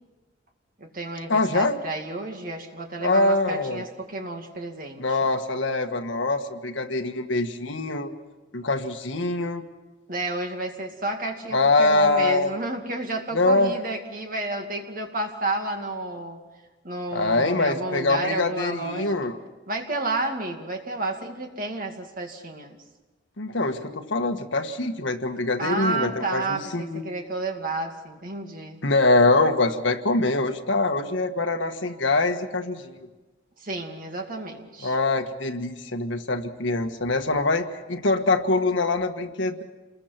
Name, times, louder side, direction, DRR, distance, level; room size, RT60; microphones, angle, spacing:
voice 1, 0.8-5.3 10.1-16.4 16.8-19.2 19.7-22.8 25.6-28.8 33.6-35.0, right 2 dB, 45° right, 3 dB, 2.4 m, -31 dB
voice 2, 1.3-1.8 3.0-3.8 5.0-8.1 8.5-9.7 11.5-12.5 13.3-13.7 17.1-19.3 23.4-27.0 28.8-32.9 34.8-39.6, left 2 dB, 70° left, 6 dB, 1.5 m, -24 dB
28.5 x 21.0 x 6.0 m, 1.2 s
head